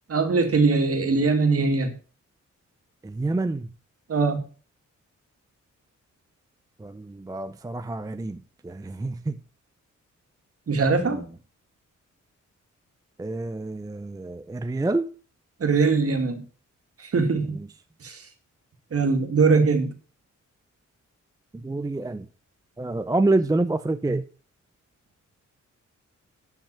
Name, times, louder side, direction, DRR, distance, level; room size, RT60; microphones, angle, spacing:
voice 1, 0.1-1.9 4.1-4.4 10.7-11.2 15.6-16.4 17.0-17.6 18.0-18.2 18.9-19.9, right 4 dB, 50° right, 2.3 m, -21 dB
voice 2, 3.0-3.7 6.8-9.4 11.0-11.3 13.2-15.1 17.5-17.7 21.5-22.3 22.8-24.2, right 2 dB, 10° right, 0.5 m, -27 dB
10.5 x 5.8 x 6.9 m
wide cardioid pair, 115°, 30 cm